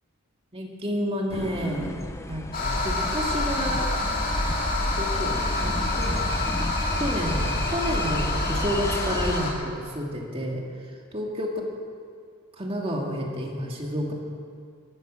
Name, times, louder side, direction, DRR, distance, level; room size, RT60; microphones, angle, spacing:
voice 1, 0.5-1.9 2.3-3.9 5.0-5.3 5.6-6.3 7.0-10.6 11.1-11.5 12.6-14.1, equal, 25° right, 0 dB, 2.0 m, -30 dB
sound 1, 1.3-9.4, left 1 dB, 15° left, 0.6 m, -34 dB
sound 2, 2.5-9.5, left 2 dB, 40° left, 2.6 m, -27 dB
14.5 x 11.5 x 6.3 m, 2.1 s
head